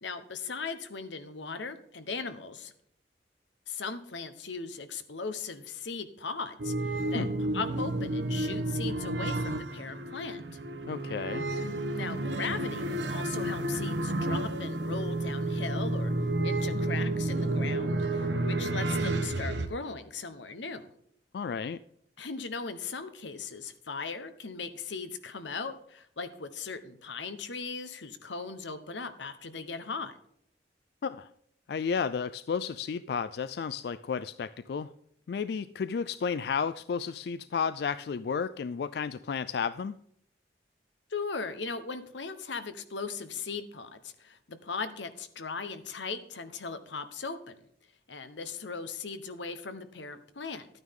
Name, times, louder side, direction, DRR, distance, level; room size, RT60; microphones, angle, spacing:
voice 1, 0.0-2.7 3.7-10.4 11.9-16.1 16.4-20.9 22.2-30.2 41.1-47.6 48.1-50.7, left 4 dB, 90° left, 11 dB, 1.1 m, -38 dB
sound 1, 6.6-19.7, right 2 dB, 80° right, 1.0 m, -31 dB
voice 2, 10.9-11.5 21.3-21.8 31.0-31.3 31.7-34.9 35.3-39.9, left 6 dB, 60° left, 14 dB, 0.3 m, -32 dB
12.5 x 9.3 x 3.7 m, 0.70 s
head